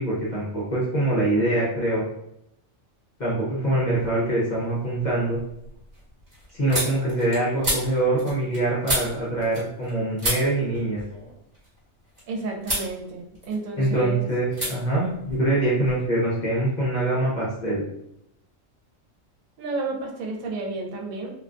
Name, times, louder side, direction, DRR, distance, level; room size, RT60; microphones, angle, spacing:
voice 1, 0.0-2.0 3.2-5.4 6.5-11.0 13.8-17.8, right 1 dB, 45° left, -7 dB, 0.6 m, -24 dB
sound 1, 3.9-4.5 4.9-9.9 10.2-12.2 12.6-12.9 13.3-14.0 14.5-14.7 15.0-16.0, right 1 dB, 30° right, 1.0 m, -31 dB
voice 2, 12.3-14.2 19.6-21.3, right 3 dB, 75° right, 0 dB, 1.0 m, -31 dB
2.5 x 2.2 x 2.4 m, 0.77 s
omnidirectional pair, 1.4 m